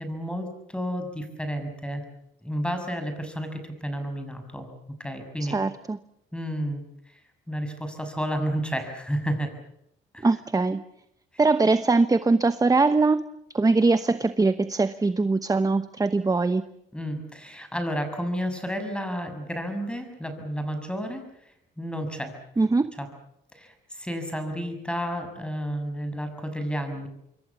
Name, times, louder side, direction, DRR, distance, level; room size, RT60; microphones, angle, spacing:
voice 1, 0.0-2.0 2.4-4.7 5.0-5.6 6.3-7.2 7.5-9.5 10.1-10.3 16.9-21.2 21.8-22.3 23.0-23.1 23.5-27.1, equal, 5° left, 7 dB, 6.6 m, -31 dB
voice 2, 5.4-6.0 10.2-10.8 11.4-13.2 13.5-16.6 22.6-22.9, right 3 dB, 20° right, 12 dB, 1.0 m, -22 dB
27.0 x 23.5 x 7.2 m, 0.76 s
cardioid pair, 90°, 20 cm